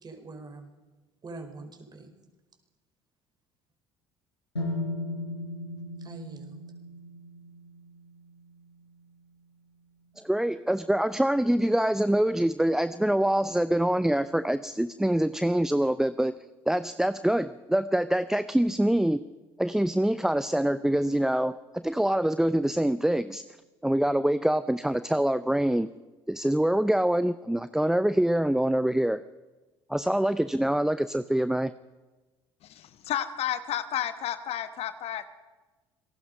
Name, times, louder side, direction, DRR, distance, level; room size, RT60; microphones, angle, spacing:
voice 1, 0.0-0.7 1.2-2.1 6.0-6.7, right 3 dB, 30° right, 5 dB, 4.8 m, -44 dB
sound 1, 4.6-8.5, left 2 dB, 85° left, 4.7 m, -36 dB
voice 2, 10.2-16.3 16.7-19.2 19.6-23.4 23.8-25.9 26.3-29.2 29.9-31.7, right 1 dB, 5° right, 14 dB, 0.6 m, -25 dB
voice 3, 32.7-35.3, left 10 dB, 50° left, 11 dB, 1.3 m, -32 dB
27.0 x 19.0 x 5.4 m, 1.2 s
figure-of-eight pair, 55°, 14 cm